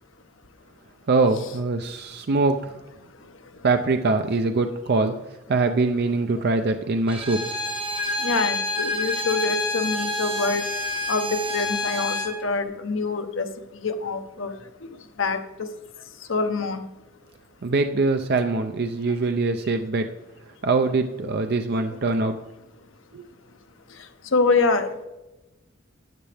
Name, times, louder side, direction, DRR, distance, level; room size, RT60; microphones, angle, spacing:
voice 1, 1.1-2.7 3.6-5.1 5.5-7.6 17.6-20.1 20.6-22.4 23.1-23.2, right 3 dB, 55° right, 6 dB, 0.5 m, -23 dB
Bowed string instrument, 7.1-12.4, left 1 dB, 30° right, 1.5 m, -28 dB
voice 2, 8.2-10.6 11.1-11.3 11.5-12.2 12.4-13.5 13.8-14.5 15.2-15.4 16.3-16.8 24.3-25.1, left 4 dB, 70° left, 7 dB, 0.9 m, -24 dB
12.5 x 8.7 x 3.4 m, 1.0 s
head